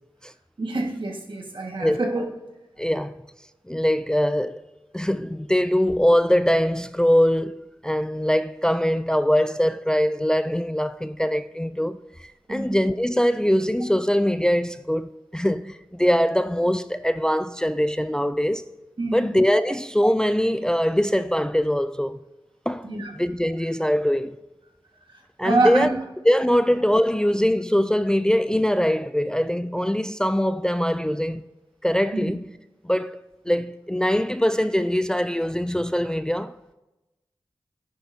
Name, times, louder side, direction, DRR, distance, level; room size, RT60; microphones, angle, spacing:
voice 1, 0.6-2.2 12.5-12.8 19.0-19.3 22.8-23.1 25.4-26.0 32.1-32.3, right 2 dB, 65° right, 1.6 m, -25 dB
voice 2, 2.8-3.2 3.7-4.6 4.9-18.6 19.1-22.2 22.7-22.9 23.1-24.4 25.4-25.9 26.3-31.4 31.8-32.5 32.8-33.2 33.5-36.5, equal, 10° left, 0.3 m, -22 dB
11.5 x 10.0 x 2.7 m
cardioid pair, 45°, 9 cm